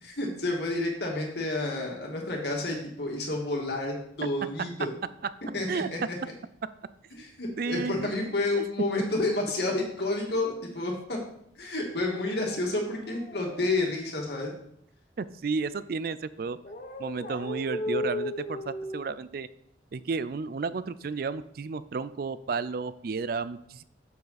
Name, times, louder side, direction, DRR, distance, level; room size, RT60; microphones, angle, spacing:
voice 1, 0.0-4.9 5.5-6.0 7.2-11.2 11.6-14.5, left 2 dB, 60° left, 0 dB, 2.0 m, -30 dB
voice 2, 7.6-8.1 8.5-8.7 15.2-16.6 17.0-19.5 19.9-23.8, right 4 dB, 50° right, 16 dB, 0.4 m, -32 dB
sound 1, 12.0-14.3 16.6-19.1, left 1 dB, 45° left, 0.8 m, -36 dB
7.6 x 6.8 x 4.0 m, 0.72 s
head